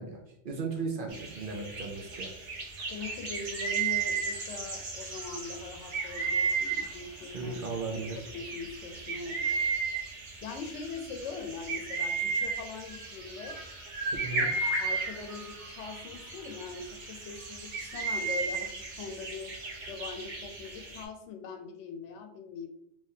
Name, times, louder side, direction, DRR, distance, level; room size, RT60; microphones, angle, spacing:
voice 1, 0.0-2.3 7.3-8.2 14.2-14.5, right 4 dB, 55° right, 2 dB, 0.7 m, -36 dB
sound 1, 1.1-21.0, right 4 dB, 90° right, 1.2 m, -34 dB
voice 2, 2.9-9.5 10.4-13.6 14.4-19.5 19.9-22.7, left 4 dB, 85° left, 6 dB, 0.9 m, -42 dB
3.4 x 3.1 x 2.7 m, 0.76 s
omnidirectional pair, 1.2 m